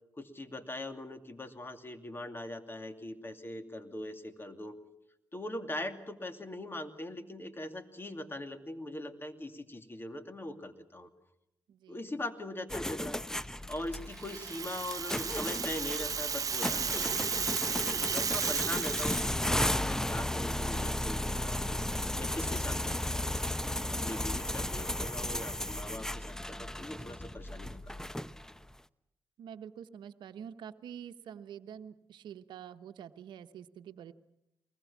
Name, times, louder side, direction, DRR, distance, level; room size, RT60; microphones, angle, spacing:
voice 1, 0.2-4.8 5.3-11.1 11.9-13.2 13.7-17.1 17.8-21.8 22.2-23.5 23.9-28.1, left 1 dB, 30° left, 7 dB, 2.6 m, -41 dB
voice 2, 11.7-12.1 14.0-14.2 24.6-25.0 29.4-34.1, right 8 dB, 75° right, 10 dB, 1.0 m, -48 dB
sound 1, 12.7-28.6, left 1 dB, 5° left, 0.8 m, -34 dB
Rattle (instrument), 14.1-19.3, right 6 dB, 50° right, 0.8 m, -34 dB
23.5 x 20.5 x 7.3 m, 0.84 s
supercardioid pair, 50°, 8 cm